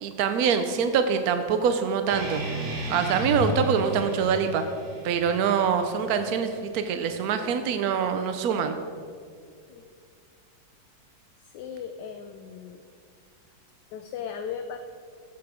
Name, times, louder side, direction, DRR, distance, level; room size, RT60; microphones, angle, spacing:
voice 1, 0.0-2.4 2.9-4.6 5.0-8.8, right 6 dB, 80° right, 8 dB, 0.8 m, -24 dB
sound 1, 2.1-7.1, equal, 35° right, 3.2 m, -34 dB
voice 2, 11.4-12.8 13.9-14.8, left 7 dB, 75° left, 8 dB, 1.0 m, -37 dB
14.5 x 5.9 x 4.9 m, 2.2 s
omnidirectional pair, 2.3 m